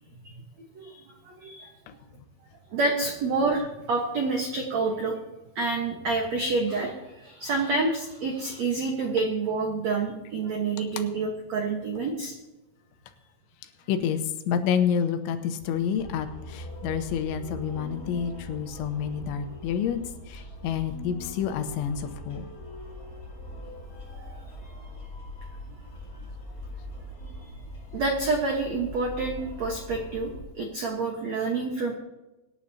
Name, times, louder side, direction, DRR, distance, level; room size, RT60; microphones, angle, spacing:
voice 1, 0.7-1.7 2.7-5.2 5.5-12.3 27.9-31.9, right 3 dB, 85° right, 1 dB, 1.5 m, -28 dB
voice 2, 13.9-22.4, left 8 dB, 90° left, 8 dB, 3.4 m, -29 dB
sound 1, 16.0-30.4, equal, 25° left, 2.0 m, -41 dB
25.0 x 10.5 x 2.8 m, 1.1 s
omnidirectional pair, 5.3 m